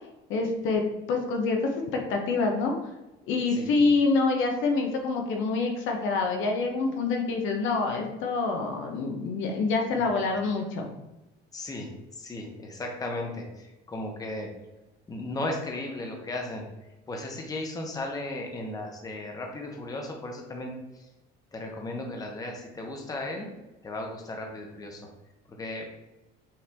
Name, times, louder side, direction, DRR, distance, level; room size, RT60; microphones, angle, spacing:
voice 1, 0.3-0.8 1.1-2.7 3.3-10.9, left 3 dB, 65° left, 2 dB, 0.8 m, -26 dB
voice 2, 11.5-11.9 12.2-14.5 15.1-16.7 17.1-20.7 21.5-23.5 23.8-25.1 25.5-25.9, left 2 dB, 15° left, 1 dB, 0.8 m, -35 dB
5.7 x 2.5 x 3.4 m, 1.0 s
cardioid pair, 135°, 21 cm